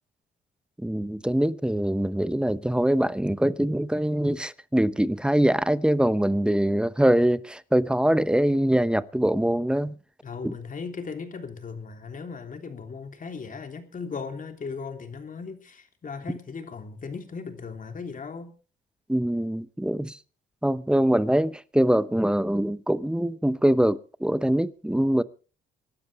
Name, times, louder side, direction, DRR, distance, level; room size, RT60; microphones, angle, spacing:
voice 1, 0.8-10.0 10.4-10.5 19.1-20.2 20.6-25.2, right 1 dB, 5° right, 0.9 m, -23 dB
voice 2, 10.2-18.5, left 5 dB, 40° left, 3.1 m, -37 dB
25.5 x 12.0 x 3.3 m
cardioid pair, 90°, 20 cm